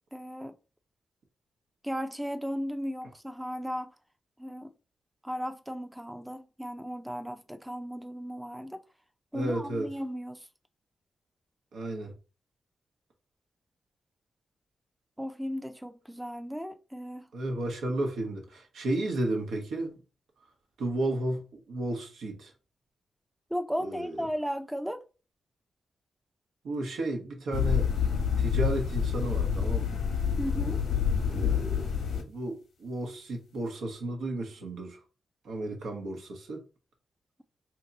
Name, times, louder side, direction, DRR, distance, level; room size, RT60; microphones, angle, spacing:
voice 1, 0.1-0.5 1.8-3.9 4.4-4.7 5.2-8.8 9.3-10.5 15.2-17.3 23.5-25.1 30.4-30.8, equal, 5° right, 0.4 m, -35 dB
voice 2, 9.3-9.9 11.7-12.1 17.3-19.9 20.8-22.5 23.8-24.2 26.6-27.9 28.4-30.0 31.2-31.8 32.3-35.0 35.4-36.6, right 1 dB, 85° right, 1.0 m, -33 dB
sound 1, 27.5-32.2, left 7 dB, 90° left, 1.0 m, -27 dB
2.9 x 2.8 x 3.8 m
cardioid pair, 65°, 0 cm